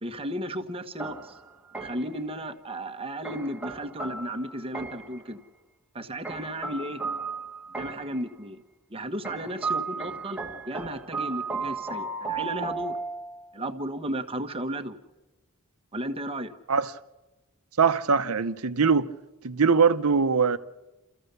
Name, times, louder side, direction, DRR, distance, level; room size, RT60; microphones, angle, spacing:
voice 1, 0.0-1.4 1.7-5.4 5.9-7.0 7.8-8.6 8.9-13.0 13.5-15.0 15.9-16.5, right 1 dB, 25° right, 1.1 m, -34 dB
sound 1, 1.0-2.2 3.2-5.2 6.2-8.2 9.2-13.5, right 4 dB, 5° right, 1.3 m, -34 dB
voice 2, 17.8-19.1 19.4-20.6, right 5 dB, 75° right, 0.8 m, -22 dB
29.5 x 14.5 x 6.8 m
head